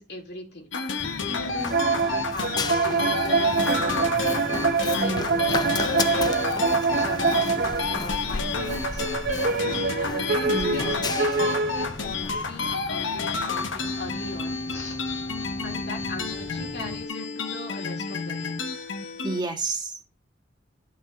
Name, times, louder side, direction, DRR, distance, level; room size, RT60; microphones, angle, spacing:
voice 1, 0.0-15.0 15.6-18.5, left 1 dB, 60° left, 2.3 m, -39 dB
sound 1, 0.7-19.4, left 4 dB, 85° left, 1.0 m, -30 dB
Run, 1.0-17.0, left 3 dB, 20° left, 0.4 m, -35 dB
sound 2, 1.7-8.0 8.6-12.1, right 4 dB, 55° right, 0.6 m, -25 dB
voice 2, 4.9-5.4 10.5-11.0 19.2-19.9, right 3 dB, 25° right, 1.5 m, -30 dB
9.1 x 5.5 x 4.0 m
head